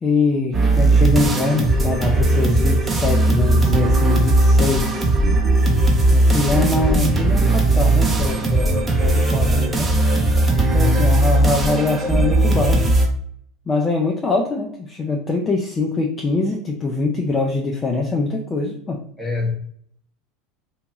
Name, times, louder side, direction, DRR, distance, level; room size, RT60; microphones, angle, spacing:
voice 1, 0.0-5.1 6.1-9.9 10.7-13.0 13.7-19.1, left 3 dB, 25° left, 0.5 m, -23 dB
sound 1, 0.5-13.1, right 2 dB, 20° right, 0.7 m, -17 dB
voice 2, 10.5-11.2 19.2-19.5, left 4 dB, 10° left, 0.9 m, -24 dB
2.6 x 2.3 x 3.0 m
hypercardioid pair, 100°, 0 cm